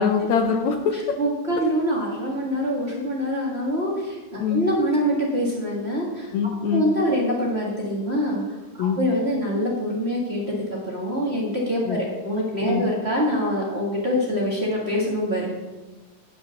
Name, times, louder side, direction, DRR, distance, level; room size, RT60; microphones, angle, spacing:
voice 1, 0.0-1.0 4.4-4.6 6.3-6.9 8.8-9.0 11.9-12.0 12.6-12.8, left 6 dB, 80° left, 6 dB, 1.6 m, -23 dB
voice 2, 0.9-6.3 6.7-8.4 8.7-15.5, equal, 30° right, -4 dB, 1.1 m, -25 dB
11.0 x 5.3 x 7.0 m, 1.2 s
omnidirectional pair, 4.1 m